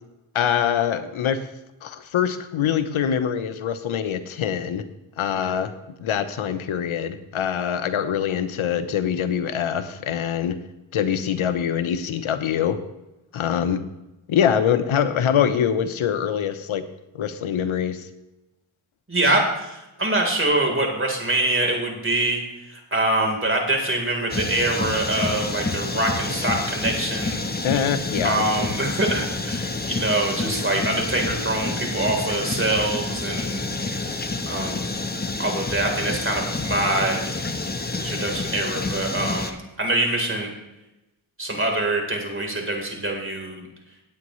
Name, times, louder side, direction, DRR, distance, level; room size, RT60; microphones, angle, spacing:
voice 1, 0.3-1.4 1.8-4.8 5.2-5.7 6.0-10.6 10.9-12.8 13.3-13.8 14.3-16.8 17.1-18.1 27.6-28.4, left 8 dB, 90° left, 10 dB, 0.9 m, -24 dB
voice 2, 19.1-27.5 28.2-33.7 34.2-35.0 35.4-37.2 38.0-40.5 41.4-43.7, right 2 dB, 25° right, 1 dB, 3.8 m, -24 dB
sound 1, 24.3-39.5, left 3 dB, 20° left, 1.1 m, -28 dB
18.0 x 8.7 x 3.2 m, 0.98 s
cardioid pair, 60°, 47 cm